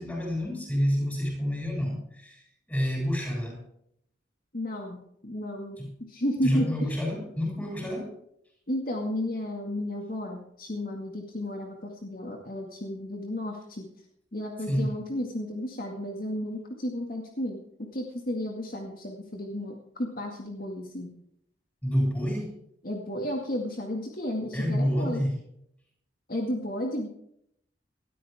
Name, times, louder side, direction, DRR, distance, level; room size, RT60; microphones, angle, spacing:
voice 1, 0.0-2.4 2.7-3.7 5.8-5.9 6.4-8.2 14.7-15.0 21.8-22.6 24.5-25.4, equal, 10° left, -1 dB, 7.2 m, -28 dB
voice 2, 4.5-5.8 6.1-6.9 8.7-13.8 14.3-17.6 17.9-21.1 22.8-25.2 26.3-27.1, left 1 dB, 55° left, 1 dB, 2.1 m, -33 dB
19.5 x 13.0 x 3.6 m, 0.71 s
head